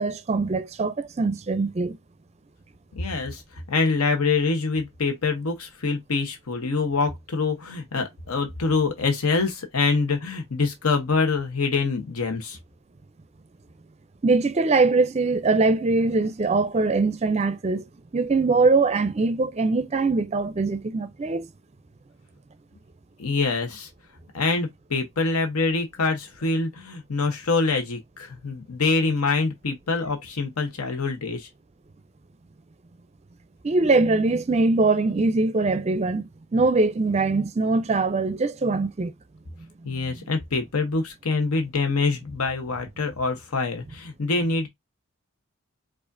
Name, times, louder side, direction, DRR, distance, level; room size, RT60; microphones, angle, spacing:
voice 1, 0.0-2.0 14.2-17.8 18.1-21.5 33.6-39.1 39.8-40.0, right 3 dB, 30° right, 0.4 m, -22 dB
voice 2, 2.9-12.6 23.2-23.9 24.3-31.5 39.8-44.7, left 4 dB, 85° left, 0.9 m, -25 dB
4.8 x 2.5 x 2.5 m
head